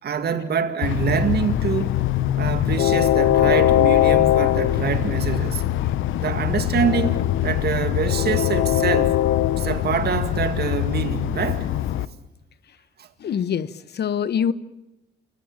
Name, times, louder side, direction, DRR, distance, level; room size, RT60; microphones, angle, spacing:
voice 1, 0.0-2.0 2.4-5.6 6.2-9.2 9.6-11.7 12.0-12.1 13.0-13.1, right 7 dB, 55° right, 2.2 m, -25 dB
Train, 0.8-12.1, left 13 dB, 80° left, 0.8 m, -21 dB
voice 2, 13.2-14.5, left 8 dB, 55° left, 1.1 m, -25 dB
29.0 x 18.0 x 8.8 m
cardioid pair, 90°, 20 cm